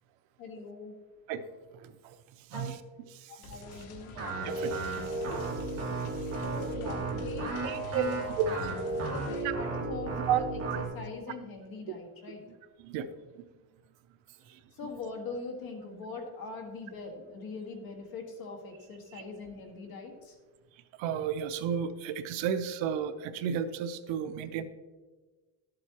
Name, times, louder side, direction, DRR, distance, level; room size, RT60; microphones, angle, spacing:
voice 1, 0.4-0.9 2.5-2.7 3.3-4.1 6.4-8.1 9.0-10.4 10.9-12.4 14.8-20.4, left 4 dB, 45° left, 3 dB, 1.8 m, -42 dB
voice 2, 1.7-2.8 3.1-3.8 4.4-6.3 7.6-8.8 9.4-9.5 10.3-10.8 12.8-13.1 13.3-13.5 14.5-14.9 19.1-19.2 21.0-24.6, right 7 dB, 70° right, 10 dB, 0.8 m, -34 dB
sound 1, 3.4-9.4, left 1 dB, 80° left, 1.7 m, -48 dB
sound 2, 4.2-10.9, right 3 dB, 30° right, 2.2 m, -34 dB
12.0 x 7.9 x 2.9 m, 1.3 s
cardioid pair, 135°, 48 cm